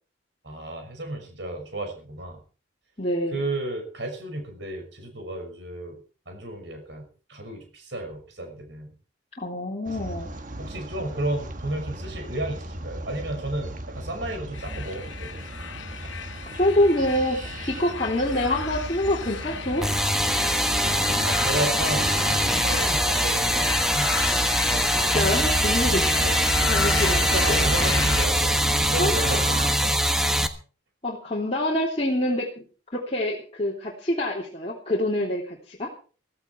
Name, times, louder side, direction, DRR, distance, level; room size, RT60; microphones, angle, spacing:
voice 1, 0.4-2.4 3.3-6.0 6.3-8.9 10.6-15.3 21.2-24.4 24.7-25.2 26.2-26.7 26.9-28.6 28.9-30.0, right 1 dB, 65° right, 5 dB, 5.9 m, -33 dB
voice 2, 3.0-3.4 9.4-10.3 16.6-19.8 25.1-26.0 26.3-27.6 29.0-29.4 31.0-32.6 32.9-35.9, left 1 dB, 30° left, -4 dB, 3.2 m, -26 dB
sound 1, 9.8-29.7, right 1 dB, 40° right, 1.4 m, -34 dB
sound 2, 14.5-28.3, left 8 dB, 75° left, 0.9 m, -34 dB
sound 3, 19.8-30.5, equal, ahead, 1.2 m, -23 dB
15.5 x 15.5 x 4.6 m, 0.38 s
head